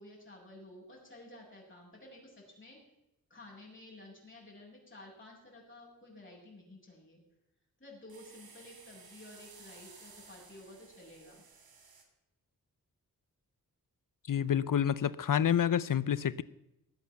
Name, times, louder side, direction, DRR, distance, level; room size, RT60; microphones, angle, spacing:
voice 1, 0.0-2.8 3.3-7.2 7.8-11.4, left 1 dB, 35° left, -4 dB, 7.4 m, -53 dB
sound 1, 8.1-12.0, right 5 dB, 90° right, 2.8 m, -56 dB
voice 2, 14.3-16.4, left 9 dB, 65° left, 18 dB, 0.7 m, -28 dB
19.0 x 8.2 x 7.3 m, 0.86 s
wide cardioid pair, 80°, 35 cm